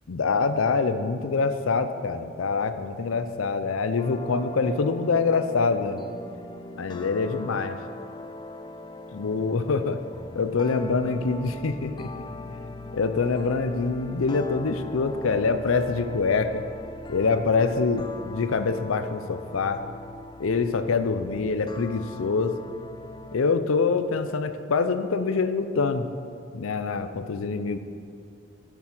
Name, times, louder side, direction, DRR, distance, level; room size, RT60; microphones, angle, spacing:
voice 1, 0.1-6.0 6.8-7.8 9.1-10.0 10.3-12.2 12.9-16.6 17.1-19.8 20.4-22.5 23.3-26.1 26.5-27.8, left 4 dB, 90° left, 10 dB, 0.5 m, -25 dB
sound 1, 4.0-23.4, left 2 dB, 20° left, 0.4 m, -41 dB
7.4 x 7.2 x 5.9 m, 2.5 s
head